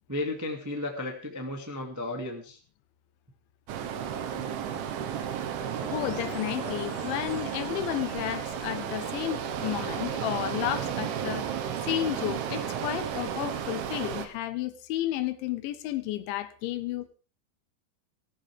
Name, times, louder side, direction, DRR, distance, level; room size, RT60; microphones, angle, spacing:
voice 1, 0.1-2.6, left 2 dB, 10° right, 0.8 m, -34 dB
sound 1, 3.7-14.3, right 8 dB, 85° right, 3.7 m, -33 dB
voice 2, 5.8-17.1, left 13 dB, 85° left, 3.4 m, -32 dB
sound 2, 5.8-9.3, left 8 dB, 65° left, 2.6 m, -47 dB
18.5 x 14.0 x 3.6 m
omnidirectional pair, 5.3 m